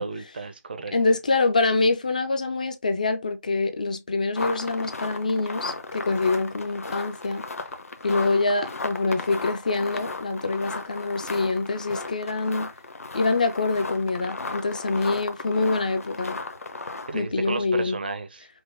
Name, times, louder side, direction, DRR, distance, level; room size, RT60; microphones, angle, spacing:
voice 1, 0.0-0.9 17.1-18.5, right 4 dB, 35° right, 0.5 m, -32 dB
voice 2, 0.9-7.4 8.0-12.7 13.1-16.4 17.1-18.0, left 3 dB, 25° left, 0.4 m, -25 dB
sound 1, 4.4-17.3, left 3 dB, 55° left, 0.8 m, -35 dB
5.1 x 2.0 x 3.5 m
figure-of-eight pair, 160°, 9 cm